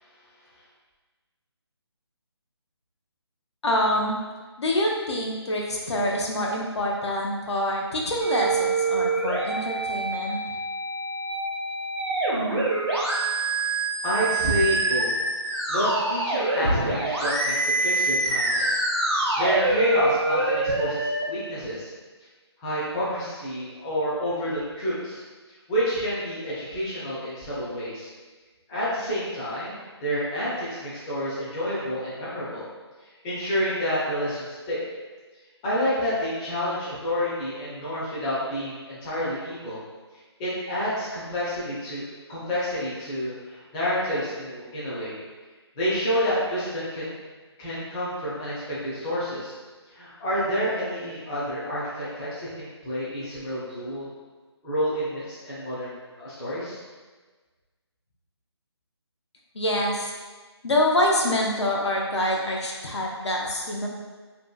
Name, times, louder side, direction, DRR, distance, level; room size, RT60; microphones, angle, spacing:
voice 1, 3.6-4.2 4.6-10.4 59.5-60.1 60.6-63.9, left 1 dB, 75° left, -2 dB, 0.6 m, -26 dB
sound 1, 8.2-21.2, right 2 dB, 70° right, 0.9 m, -26 dB
voice 2, 14.0-15.1 15.7-18.8 19.2-21.9 22.6-25.2 25.7-28.1 28.7-32.6 33.2-34.8 35.6-39.8 40.4-42.0 42.3-45.2 45.8-47.1 47.6-49.5 49.9-54.1 54.6-56.8, equal, 10° left, -10 dB, 0.5 m, -29 dB
2.7 x 2.5 x 2.2 m, 1.3 s
figure-of-eight pair, 155°, 14 cm